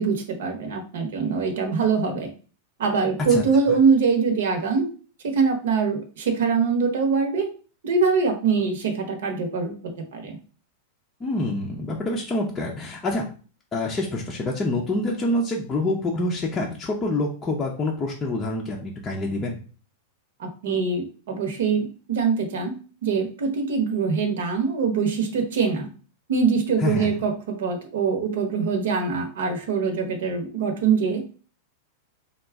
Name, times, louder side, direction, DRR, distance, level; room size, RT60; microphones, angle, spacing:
voice 1, 0.0-2.3 2.8-4.9 5.2-7.5 7.8-10.4 20.4-22.7 23.0-25.9 26.3-31.2, right 5 dB, 75° right, 5 dB, 1.0 m, -23 dB
voice 2, 11.2-13.3 13.7-19.6 26.8-27.1, left 2 dB, 15° left, -2 dB, 0.5 m, -26 dB
4.0 x 2.4 x 3.5 m, 0.38 s
supercardioid pair, 160°, 0 cm